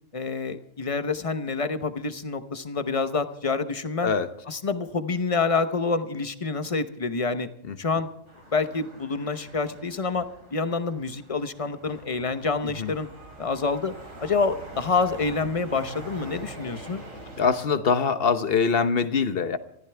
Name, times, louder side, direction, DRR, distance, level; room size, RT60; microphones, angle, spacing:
voice 1, 0.1-4.1 4.5-7.5 7.8-8.1 8.5-13.1 13.4-13.9 14.2-17.0, left 4 dB, 30° left, 11 dB, 0.9 m, -27 dB
sound 1, 8.3-17.6, right 2 dB, 85° right, 3.9 m, -44 dB
voice 2, 17.4-19.6, left 5 dB, 50° left, 12 dB, 1.1 m, -23 dB
23.5 x 15.0 x 3.4 m, 0.79 s
omnidirectional pair, 1.3 m